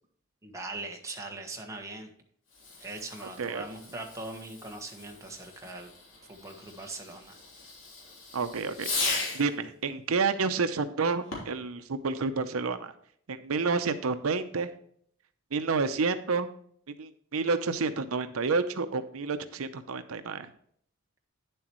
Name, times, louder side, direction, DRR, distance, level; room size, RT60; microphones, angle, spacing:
voice 1, 0.4-2.1 2.8-5.9 6.3-7.4, right 2 dB, 15° right, 1 dB, 1.4 m, -41 dB
Fireworks, 2.5-9.6 11.2-11.7, left 3 dB, 65° left, 3.2 m, -38 dB
voice 2, 8.3-9.0 9.3-12.9 13.3-14.7 15.5-16.5 17.0-20.5, right 4 dB, 90° right, 10 dB, 0.7 m, -29 dB
9.7 x 7.7 x 3.1 m, 0.63 s
head